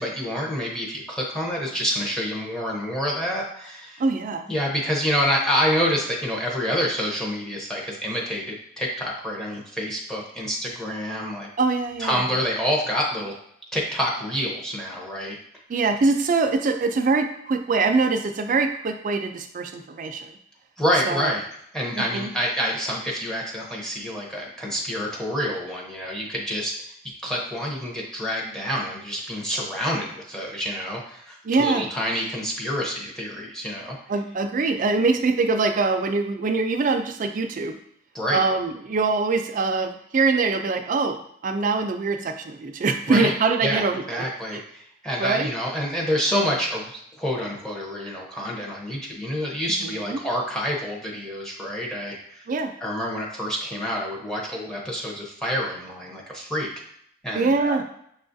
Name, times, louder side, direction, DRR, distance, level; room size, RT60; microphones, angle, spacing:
voice 1, 0.0-4.0 4.5-11.5 12.0-13.3 13.7-15.4 20.8-21.4 21.7-26.7 27.2-34.0 38.1-38.4 43.1-43.3 43.6-52.4 52.8-56.7 57.2-57.8, equal, 5° left, -3 dB, 0.6 m, -27 dB
voice 2, 4.0-4.5 11.6-12.4 15.7-20.4 21.1-21.3 21.9-22.3 31.4-31.8 34.1-37.8 38.3-44.2 44.5-44.6 45.2-45.5 49.8-50.2 52.5-52.7 57.3-57.8, right 3 dB, 40° right, 6 dB, 0.4 m, -23 dB
6.2 x 2.4 x 2.6 m, 0.71 s
head